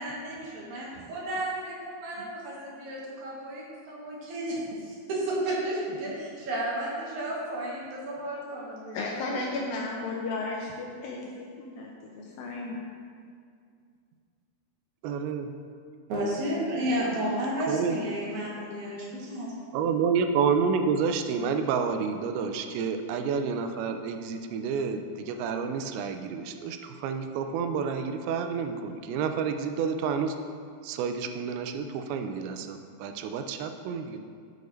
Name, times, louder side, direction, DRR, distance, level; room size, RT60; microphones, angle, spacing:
voice 1, 0.0-4.6 4.9-9.5 16.1-19.5, right 1 dB, 60° right, -5 dB, 2.4 m, -32 dB
voice 2, 8.9-11.9 12.2-12.8, left 3 dB, 80° left, -1 dB, 2.2 m, -34 dB
voice 3, 15.0-15.5 17.7-18.0 19.7-30.3 30.8-34.2, right 6 dB, 85° right, 7 dB, 2.4 m, -29 dB
9.2 x 6.6 x 3.1 m, 2.2 s
omnidirectional pair, 4.5 m